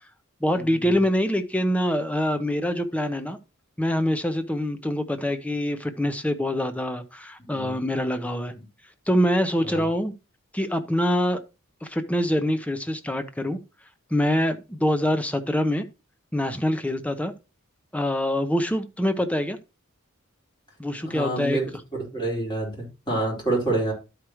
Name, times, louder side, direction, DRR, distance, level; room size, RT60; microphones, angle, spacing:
voice 1, 0.4-3.4 3.8-8.5 9.1-10.1 10.5-11.4 11.8-13.6 14.1-15.8 16.3-17.3 17.9-19.6 20.8-21.6, equal, 5° left, 0.7 m, -25 dB
voice 2, 21.0-21.7 22.1-23.9, right 2 dB, 25° left, 4.3 m, -27 dB
12.0 x 4.9 x 3.0 m
head